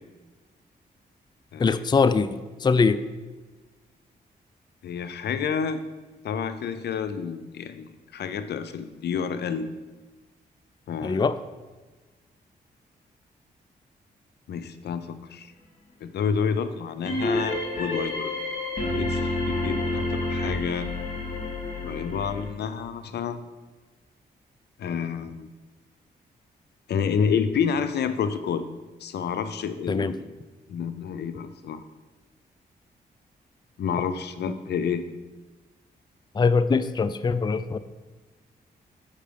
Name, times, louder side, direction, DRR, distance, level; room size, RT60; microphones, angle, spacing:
voice 1, 1.6-3.0 11.0-11.4 29.9-30.1 34.5-34.6 36.3-37.8, left 4 dB, 25° left, 13 dB, 0.4 m, -22 dB
voice 2, 4.8-5.8 6.2-9.7 10.9-11.3 14.5-15.5 16.0-18.3 18.8-20.9 21.8-23.4 24.8-25.5 26.9-28.7 29.0-30.3 30.7-31.8 33.8-35.1, left 6 dB, 75° left, 11 dB, 0.5 m, -29 dB
sound 1, 17.1-22.5, left 2 dB, 50° left, 2.7 m, -29 dB
6.6 x 5.4 x 5.1 m, 1.3 s
cardioid pair, 65°, 17 cm